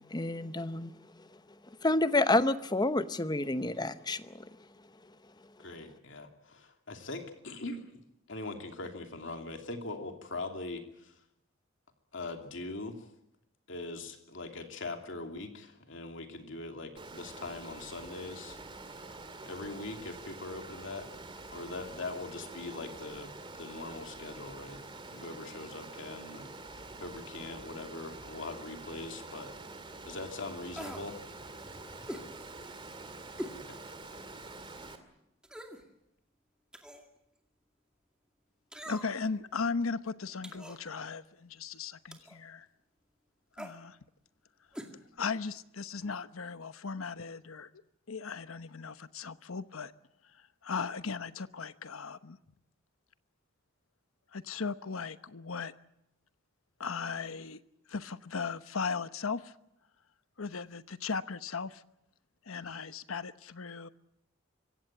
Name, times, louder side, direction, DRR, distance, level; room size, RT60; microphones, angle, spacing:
voice 1, 0.1-0.9 1.8-4.3, left 2 dB, 20° left, 12 dB, 0.8 m, -28 dB
voice 2, 5.6-8.0 8.3-11.1 12.1-13.1 13.7-18.6 18.9-19.0 19.4-21.1 21.5-23.3 23.6-24.8 25.1-29.5 30.0-31.2 33.7-33.8, left 2 dB, 60° left, 5 dB, 2.8 m, -41 dB
Water, 17.0-35.0, right 2 dB, 25° right, 2.2 m, -46 dB
sound 1, 30.7-31.1 32.1-32.3 33.4-33.6 34.1-34.2 35.4-35.8 36.7-37.1 38.7-39.3 40.4-40.8 42.1-42.4 43.5-43.8 44.7-44.9 45.2-45.3, equal, 5° right, 2.2 m, -42 dB
voice 3, 38.8-42.7 43.6-44.0 45.2-47.7 48.1-49.9 50.3-52.4 54.3-55.7 56.8-57.6 57.9-59.5 60.4-61.8 62.5-63.9, left 5 dB, 90° left, 13 dB, 1.0 m, -37 dB
25.0 x 16.5 x 9.0 m, 0.83 s
head